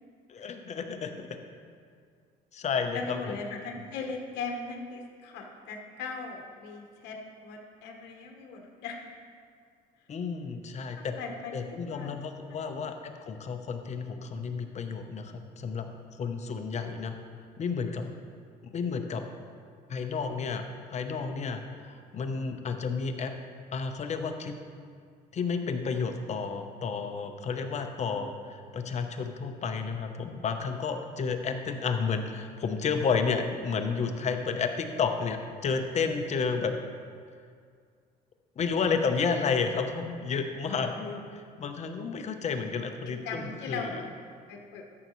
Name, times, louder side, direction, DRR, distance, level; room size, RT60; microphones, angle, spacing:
voice 1, 0.3-1.4 2.5-3.4 10.1-11.1 11.5-15.9 16.2-17.2 17.6-18.0 18.6-19.2 19.9-20.6 20.9-23.3 23.7-24.5 25.3-36.7 38.6-44.0, left 5 dB, 40° left, 6 dB, 0.8 m, -31 dB
voice 2, 2.9-9.0 11.0-12.1 12.5-12.8 43.0-44.0 44.5-44.8, left 4 dB, 85° left, 2 dB, 1.1 m, -39 dB
13.5 x 6.6 x 3.1 m, 2.1 s
cardioid pair, 110°, 17 cm